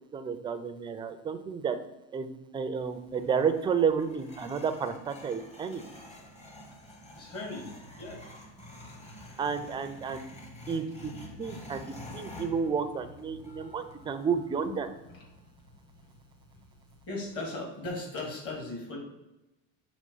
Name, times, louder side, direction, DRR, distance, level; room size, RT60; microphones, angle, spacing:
voice 1, 0.1-1.8 2.1-2.3 2.5-5.8 9.4-10.2 10.7-11.1 11.4-11.8 12.1-14.9, right 6 dB, 15° right, 8 dB, 0.3 m, -31 dB
sound 1, 2.8-17.6, left 1 dB, 20° left, 0.9 m, -49 dB
voice 2, 7.1-8.5 14.7-14.8 15.0-15.3 17.1-19.0, left 2 dB, 45° left, 0 dB, 2.3 m, -38 dB
6.4 x 3.0 x 5.4 m, 0.98 s
cardioid pair, 140°, 33 cm